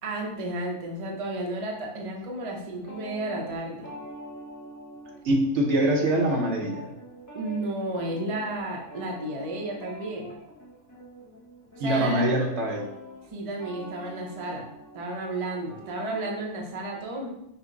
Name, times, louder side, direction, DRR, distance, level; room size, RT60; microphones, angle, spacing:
voice 1, 0.0-3.9 7.3-10.3 11.8-12.2 13.3-14.7 14.9-17.3, right 2 dB, 35° right, 0 dB, 0.6 m, -32 dB
sound 1, 2.8-5.5 5.8-16.4, left 1 dB, 20° left, 0.5 m, -44 dB
voice 2, 5.2-6.9 11.8-12.9, right 1 dB, 65° right, 0 dB, 1.0 m, -24 dB
5.6 x 2.1 x 3.8 m, 0.81 s
omnidirectional pair, 1.3 m